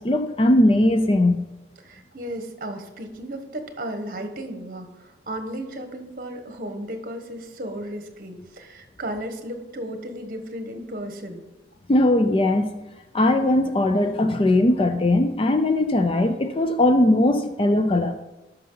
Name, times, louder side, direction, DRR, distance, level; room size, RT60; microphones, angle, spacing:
voice 1, 0.0-1.4 11.9-12.7 13.1-18.2, left 1 dB, 30° left, 8 dB, 0.4 m, -19 dB
voice 2, 1.8-11.4, right 1 dB, 50° right, 6 dB, 1.2 m, -34 dB
13.0 x 5.7 x 3.9 m, 1.1 s
head